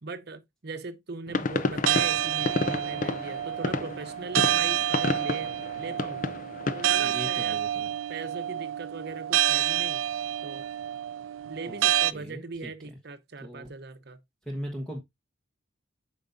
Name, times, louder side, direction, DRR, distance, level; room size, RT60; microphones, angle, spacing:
voice 1, 0.0-6.2 6.7-7.6 8.1-10.0 10.4-10.7 11.5-14.2, right 3 dB, 50° right, 0.8 m, -40 dB
sound 1, 1.3-7.0, left 3 dB, 40° left, 0.5 m, -31 dB
sound 2, 1.9-12.1, right 12 dB, 75° right, 0.3 m, -28 dB
voice 2, 7.0-7.9 11.6-11.8 12.1-12.7 13.4-13.7 14.4-15.0, equal, 5° left, 1.2 m, -38 dB
8.5 x 5.3 x 2.5 m
head